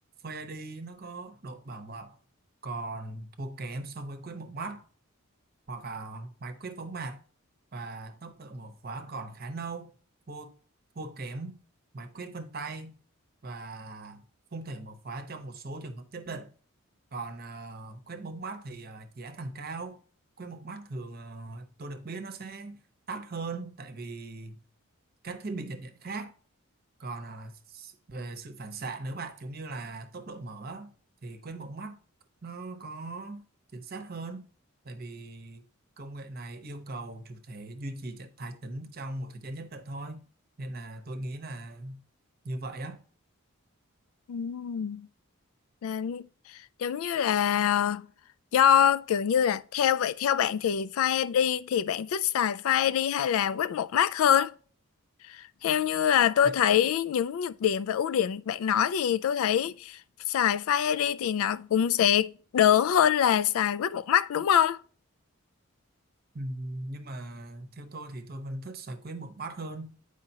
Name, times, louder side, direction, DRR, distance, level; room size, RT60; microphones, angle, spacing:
voice 1, 0.2-2.2 2.6-4.8 5.7-7.2 7.7-9.9 10.3-10.5 10.9-11.6 11.9-13.0 13.4-14.2 14.5-16.5 17.1-20.0 20.4-22.8 23.1-24.6 25.2-26.3 27.0-30.9 31.2-32.0 32.4-33.4 33.7-34.5 34.8-35.6 36.0-40.2 40.6-42.0 42.4-43.0 56.4-56.6 66.3-69.9, right 2 dB, 45° right, 0.8 m, -39 dB
voice 2, 44.3-45.1 45.8-46.3 46.8-48.1 48.5-54.5 55.3-60.0 60.3-64.8, left 9 dB, 80° left, 0.3 m, -25 dB
8.9 x 4.9 x 2.8 m
head